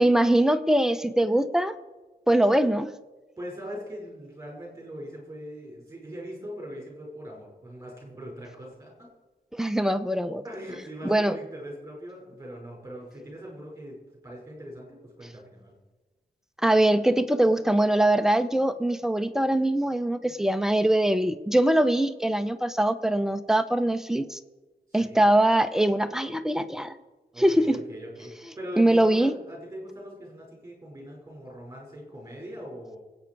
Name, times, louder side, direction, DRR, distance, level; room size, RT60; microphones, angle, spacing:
voice 1, 0.0-1.8 2.3-2.9 9.5-10.4 11.0-11.4 16.6-24.4 24.9-27.0 27.4-27.8 28.8-29.3, right 1 dB, 5° right, 9 dB, 0.6 m, -22 dB
voice 2, 3.4-9.1 10.4-14.0 14.2-14.9 15.2-15.7 25.0-25.2 27.3-33.0, equal, 20° right, -2 dB, 5.3 m, -41 dB
23.5 x 8.8 x 4.6 m, 1.2 s
wide cardioid pair, 180°, 16 cm